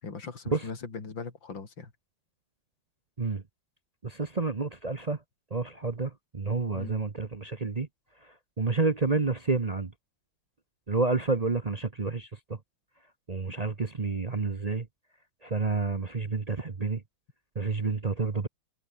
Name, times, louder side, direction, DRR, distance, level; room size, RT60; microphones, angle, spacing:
voice 1, 0.0-1.9 6.7-7.0, left 4 dB, 65° left, 4.2 m, -39 dB
voice 2, 4.0-5.2 5.5-7.9 8.6-9.9 10.9-12.3 13.3-14.9 15.4-17.0 17.6-18.5, right 3 dB, 35° right, 0.6 m, -29 dB
omnidirectional pair, 2.2 m